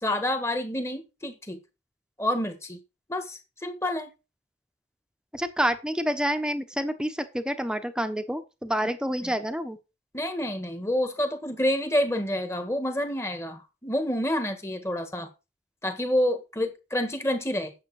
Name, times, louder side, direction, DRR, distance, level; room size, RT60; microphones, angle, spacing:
voice 1, 0.0-1.6 2.2-2.8 3.1-4.1 9.2-9.3 10.1-15.3 15.8-17.7, left 1 dB, 15° left, 1.7 m, -28 dB
voice 2, 5.3-9.8, equal, 5° right, 1.1 m, -28 dB
9.4 x 7.5 x 4.9 m
head